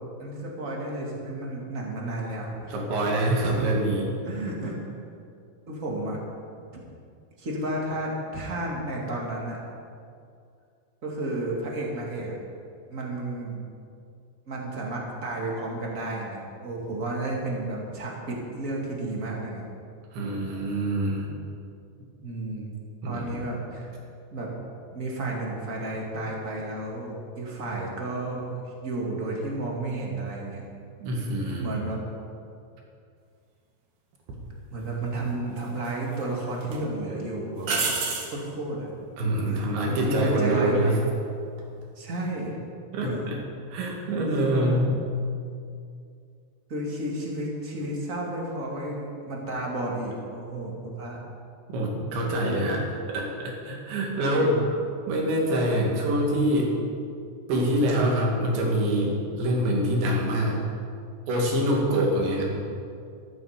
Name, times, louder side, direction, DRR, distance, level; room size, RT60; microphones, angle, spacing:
voice 1, 0.2-2.8 3.4-3.6 4.2-4.8 5.7-6.2 6.7-6.8 7.4-9.6 11.0-12.4 12.9-13.6 14.5-19.6 22.2-22.8 23.0-24.0 24.3-24.5 24.9-30.6 31.6-32.0 34.7-37.7 38.3-38.9 39.5-40.9 42.0-42.6 43.0-43.3 44.3-44.9 46.7-51.2 52.1-52.2 54.3-54.6, right 2 dB, 30° right, -2 dB, 1.7 m, -32 dB
voice 2, 2.7-4.1 20.1-21.3 23.0-23.4 31.0-31.7 39.2-41.0 42.9-43.4 43.7-45.0 51.7-54.8 55.1-56.8 57.5-60.6 61.3-62.4, right 1 dB, 80° right, -1 dB, 4.5 m, -25 dB
sound 1, 34.3-34.5 35.6-36.2 36.6-36.8 37.6-38.4 41.5-41.8, right 4 dB, 65° right, 3.7 m, -28 dB
14.0 x 14.0 x 5.1 m, 2.4 s
omnidirectional pair, 5.1 m